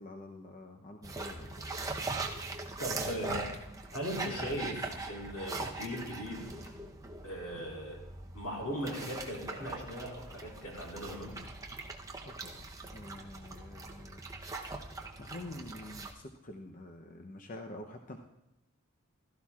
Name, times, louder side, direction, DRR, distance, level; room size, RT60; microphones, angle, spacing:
voice 1, 0.0-1.5 12.2-12.7 12.9-14.2 15.2-18.2, left 1 dB, 40° left, 4 dB, 0.7 m, -47 dB
sound 1, 1.0-16.1, right 3 dB, 15° right, 0.7 m, -41 dB
voice 2, 2.8-3.5 3.9-6.4 7.2-8.0 8.3-11.3, equal, 90° left, -2 dB, 4.5 m, -38 dB
15.5 x 13.5 x 2.4 m, 0.90 s
head